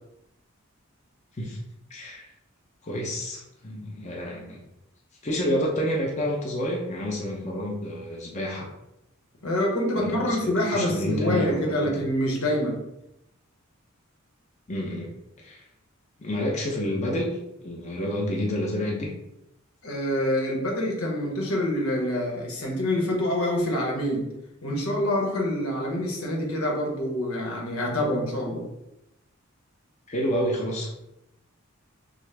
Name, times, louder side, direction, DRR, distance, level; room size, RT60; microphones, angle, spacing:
voice 1, 1.9-2.3 2.8-4.6 5.2-8.6 9.9-12.0 14.7-15.1 15.4-15.6 16.2-19.1 30.1-30.9, equal, 35° left, -2 dB, 0.8 m, -29 dB
voice 2, 9.4-12.8 19.8-24.3 24.6-28.7, left 1 dB, 85° left, -1 dB, 1.2 m, -26 dB
6.1 x 2.1 x 3.4 m, 0.86 s
head